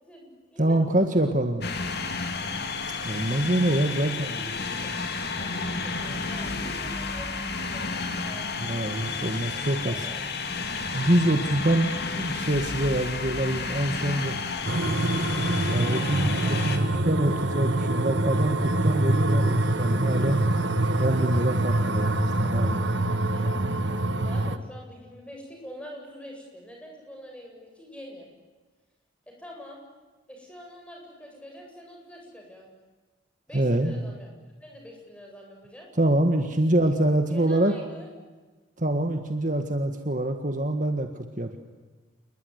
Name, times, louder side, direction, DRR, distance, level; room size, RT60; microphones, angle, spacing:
voice 1, 0.0-1.3 3.7-4.9 5.3-8.5 9.5-10.3 15.7-17.6 22.4-28.3 29.3-29.8 30.3-32.7 33.5-34.3 34.6-35.9 36.4-36.7 37.3-38.1, equal, 5° left, 0 dB, 7.8 m, -45 dB
voice 2, 0.6-1.7 3.0-4.5 8.6-10.1 10.9-14.4 15.7-20.4 21.0-22.9 33.5-34.1 36.0-37.7 38.8-41.6, right 1 dB, 40° right, 6 dB, 1.8 m, -25 dB
sound 1, 1.6-16.8, left 4 dB, 50° left, 2.7 m, -31 dB
sound 2, 14.7-24.6, right 1 dB, 65° right, 1.4 m, -25 dB
28.0 x 21.0 x 9.7 m, 1.3 s
head